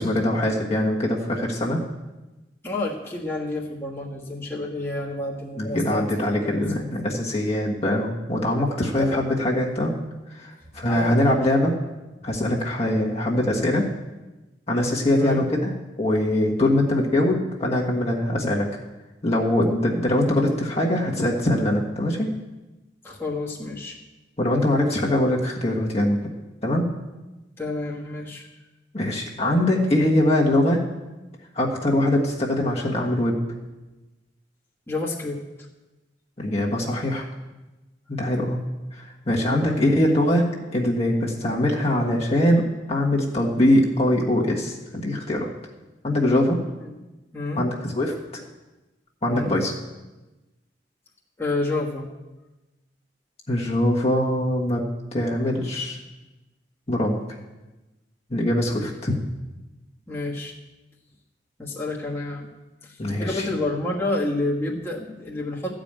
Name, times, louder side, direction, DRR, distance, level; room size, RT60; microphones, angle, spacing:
voice 1, 0.0-1.8 5.6-9.9 10.3-11.7 12.2-13.8 14.7-15.7 16.0-18.7 19.2-22.3 24.4-26.2 26.6-26.9 28.9-30.8 31.5-33.4 36.4-37.3 38.1-38.6 38.9-40.4 40.7-45.5 46.0-46.6 47.6-48.1 49.2-49.7 53.5-54.8 55.1-56.0 56.9-57.2 58.3-59.1 63.0-63.4, left 1 dB, 35° left, -2 dB, 1.5 m, -22 dB
voice 2, 2.6-6.1 6.4-7.1 9.0-9.2 10.7-11.3 15.1-15.4 23.0-24.0 27.6-28.5 34.9-35.4 39.5-39.8 46.8-47.0 47.3-47.7 49.2-49.5 51.4-52.1 58.7-58.9 60.1-60.5 61.6-62.5 62.8-65.7, left 2 dB, 15° left, -5 dB, 1.4 m, -29 dB
13.5 x 5.2 x 8.8 m, 1.1 s
head